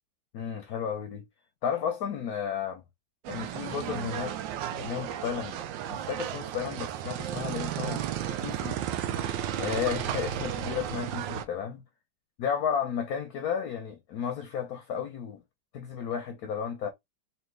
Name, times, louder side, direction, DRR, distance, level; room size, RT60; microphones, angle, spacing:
voice 1, 0.3-1.2 1.6-2.8 3.3-4.4 4.7-5.6 5.9-8.0 8.4-8.8 9.6-11.8 12.4-15.4 15.7-16.9, left 7 dB, 65° left, 1.0 m, -33 dB
sound 1, 3.2-11.4, right 10 dB, 80° right, 1.3 m, -33 dB
4.2 x 2.7 x 3.2 m
omnidirectional pair, 2.0 m